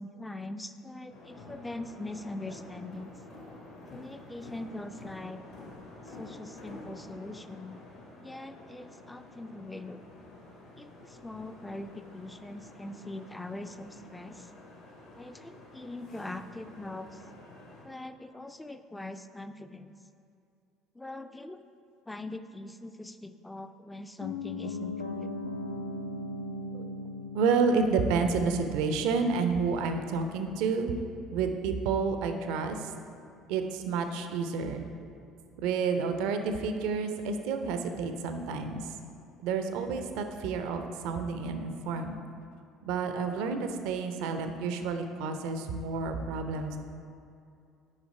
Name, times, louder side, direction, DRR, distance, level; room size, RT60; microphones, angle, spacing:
voice 1, 0.0-3.1 3.9-5.4 6.1-7.8 8.2-10.0 10.8-14.5 15.2-17.2 17.8-20.0 20.9-21.6 22.1-25.3, left 2 dB, 10° left, 10 dB, 0.4 m, -42 dB
sound 1, 1.1-17.8, left 2 dB, 65° left, 1.5 m, -49 dB
Piano, 24.2-34.2 34.5-34.6, left 2 dB, 80° left, 0.5 m, -41 dB
voice 2, 27.3-31.0 31.3-32.9 33.5-34.9 35.6-38.9 39.4-42.1 42.8-46.8, right 5 dB, 60° right, 7 dB, 0.5 m, -30 dB
6.4 x 5.0 x 4.9 m, 2.5 s
figure-of-eight pair, 55°, 0 cm